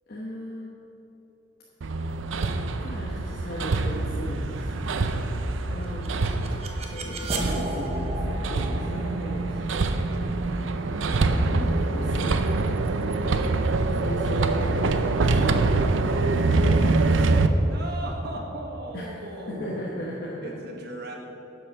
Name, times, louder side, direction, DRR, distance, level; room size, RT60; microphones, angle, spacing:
voice 1, 0.1-0.7 2.8-4.7 5.7-6.3 6.8-9.6 11.0-12.5 14.0-14.9 15.2-15.9 16.5-17.1 18.9-20.4, equal, 55° left, -5 dB, 1.1 m, -36 dB
Hammer, 1.8-17.5, right 3 dB, 80° right, 0.5 m, -25 dB
voice 2, 4.5-5.2 5.9-6.0 17.6-19.8 20.4-21.2, right 1 dB, 55° right, 0 dB, 1.5 m, -37 dB
sound 1, 5.8-14.8, right 2 dB, 35° right, 0.9 m, -34 dB
10.5 x 5.4 x 6.5 m, 3.0 s
head